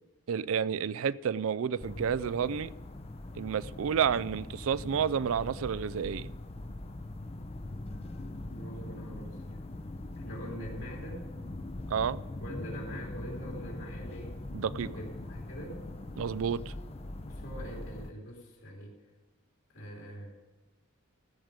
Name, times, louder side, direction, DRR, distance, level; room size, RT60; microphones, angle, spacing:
voice 1, 0.3-2.7 3.4-6.3 11.9-12.2 14.5-14.9 16.2-16.7, right 7 dB, 70° right, 19 dB, 0.4 m, -30 dB
sound 1, 1.8-18.1, left 2 dB, 25° left, 0.6 m, -41 dB
voice 2, 8.5-9.4 10.2-11.3 12.4-14.4 14.7-15.8 17.2-19.0 19.7-20.3, equal, 75° left, -2 dB, 3.8 m, -44 dB
15.0 x 5.1 x 8.8 m, 1.2 s
head